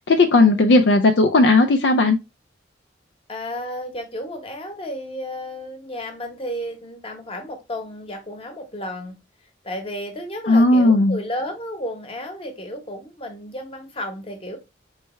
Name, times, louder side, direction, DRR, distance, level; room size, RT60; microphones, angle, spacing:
voice 1, 0.0-2.2 10.5-11.2, left 2 dB, 65° left, 6 dB, 0.4 m, -15 dB
voice 2, 3.3-9.2 9.6-14.6, equal, 30° left, 5 dB, 1.0 m, -32 dB
4.5 x 3.2 x 3.1 m, 0.25 s
head